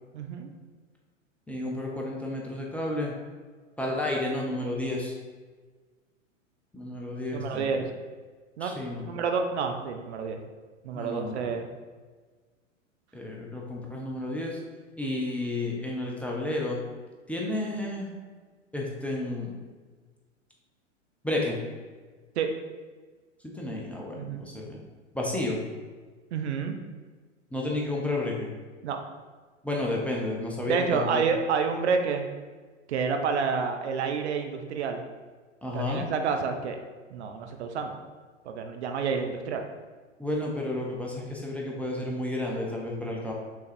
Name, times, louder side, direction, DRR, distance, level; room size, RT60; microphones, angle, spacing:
voice 1, 0.1-0.5 7.3-7.9 8.6-8.7 9.0-10.4 10.8-11.7 22.4-22.5 24.1-24.4 26.3-26.8 28.8-29.0 30.7-32.3 32.9-35.0 35.7-36.8 37.1-37.9 38.4-39.6, right 5 dB, 60° right, 5 dB, 0.8 m, -29 dB
voice 2, 1.5-3.1 3.8-5.1 6.7-7.7 8.6-9.1 10.9-11.5 13.1-14.6 15.0-16.8 17.3-18.1 18.7-19.5 21.2-21.6 23.4-24.8 25.1-25.6 27.5-28.5 29.6-31.2 35.6-36.1 40.2-43.3, left 2 dB, 5° left, -3 dB, 0.9 m, -31 dB
5.9 x 3.9 x 4.3 m, 1.4 s
figure-of-eight pair, 105°, 39 cm